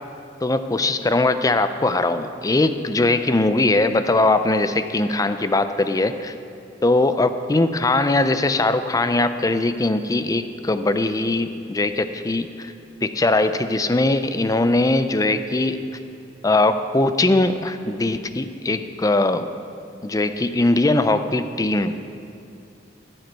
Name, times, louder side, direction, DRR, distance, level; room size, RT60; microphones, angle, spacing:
voice 1, 0.4-6.3 6.8-12.7 13.0-15.8 16.4-19.5 20.0-22.0, left 2 dB, 20° left, 10 dB, 0.4 m, -20 dB
14.5 x 8.0 x 4.6 m, 2.7 s
head